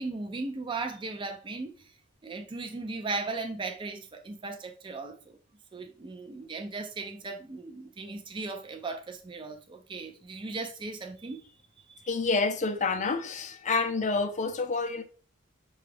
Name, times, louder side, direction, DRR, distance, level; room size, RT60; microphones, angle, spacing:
voice 1, 0.0-1.9 2.2-5.4 5.7-11.4 11.9-12.1, right 3 dB, 25° right, 0.4 m, -37 dB
voice 2, 12.1-15.0, left 4 dB, 35° left, 0.5 m, -28 dB
5.9 x 2.3 x 3.3 m
head